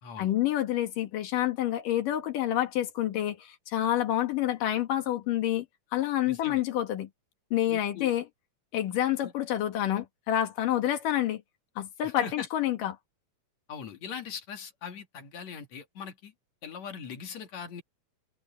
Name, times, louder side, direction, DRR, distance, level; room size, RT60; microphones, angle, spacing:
voice 1, 0.2-5.7 5.9-7.1 7.5-8.2 8.7-11.4 11.8-13.0, left 12 dB, 85° left, 3.3 m, -28 dB
voice 2, 6.3-6.6 7.7-8.1 9.2-9.3 12.0-12.5 13.7-16.3 16.6-17.8, left 7 dB, 60° left, 3.5 m, -40 dB
omnidirectional pair, 3.7 m